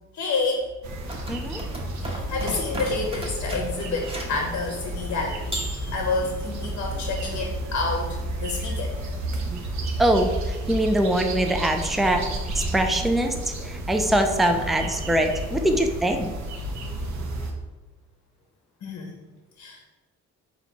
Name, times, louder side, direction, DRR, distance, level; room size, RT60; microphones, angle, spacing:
voice 1, 0.1-0.7 2.0-5.5 5.9-8.9 18.8-19.1 19.6-19.8, left 3 dB, 60° left, 1 dB, 0.8 m, -29 dB
sound 1, 0.8-17.5, right 1 dB, 65° right, 0.8 m, -32 dB
sound 2, 1.0-4.5 5.5-6.3, right 1 dB, 20° right, 0.9 m, -35 dB
voice 2, 1.3-1.6 10.0-10.3 10.7-13.3 13.6-16.3, right 1 dB, ahead, 5 dB, 0.4 m, -23 dB
4.0 x 2.9 x 4.4 m, 1.2 s
cardioid pair, 90°, 30 cm